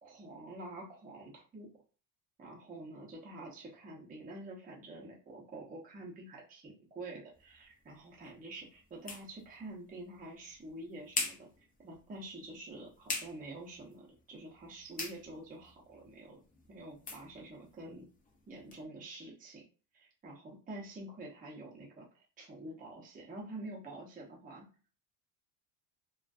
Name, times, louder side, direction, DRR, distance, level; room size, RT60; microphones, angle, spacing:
voice 1, 0.0-1.7 2.4-11.5 11.8-16.4 16.7-18.1 18.5-19.6 19.9-22.1 22.4-24.7, right 2 dB, 20° right, -3 dB, 0.6 m, -47 dB
sound 1, 7.3-18.8, left 3 dB, 20° left, 0.4 m, -45 dB
2.5 x 2.2 x 2.3 m, 0.37 s
cardioid pair, 130°, 43 cm